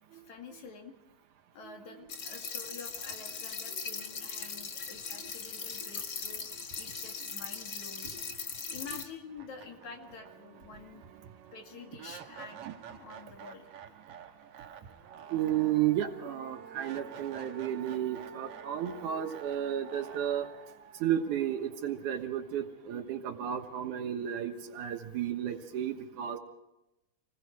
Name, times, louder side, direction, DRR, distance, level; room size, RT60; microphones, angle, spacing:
voice 1, 0.1-0.9 1.5-6.5 6.8-8.1 8.7-11.0 11.5-13.7, left 5 dB, 65° left, 3 dB, 3.5 m, -48 dB
sound 1, 2.1-9.0, left 5 dB, 45° left, 1.7 m, -39 dB
sound 2, 8.9-9.0 9.4-22.4, right 8 dB, 60° right, 1.9 m, -49 dB
voice 2, 15.3-20.5 21.0-26.4, right 10 dB, 80° right, 5 dB, 2.7 m, -33 dB
28.0 x 20.5 x 4.8 m, 0.91 s
omnidirectional pair, 3.6 m